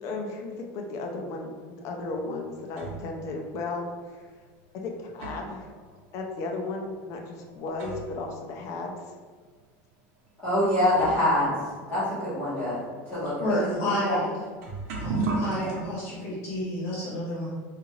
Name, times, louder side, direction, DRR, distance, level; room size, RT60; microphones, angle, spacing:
voice 1, 0.0-4.3 4.8-5.6 6.1-9.1, left 3 dB, 45° left, 2 dB, 0.5 m, -35 dB
sound 1, 2.1-3.2 4.1-4.2 4.8-8.3 8.6-8.7 9.5-9.6 10.5-10.6 10.9-15.8, right 3 dB, 80° right, 0.8 m, -36 dB
voice 2, 10.4-11.5 11.9-12.8 13.1-13.3 13.6-14.2 15.7-15.8, left 1 dB, 20° left, -13 dB, 1.3 m, -25 dB
voice 3, 13.4-14.4 14.9-17.5, left 1 dB, 70° left, -6 dB, 1.0 m, -30 dB
3.8 x 2.4 x 3.1 m, 1.5 s
supercardioid pair, 155°, 8 cm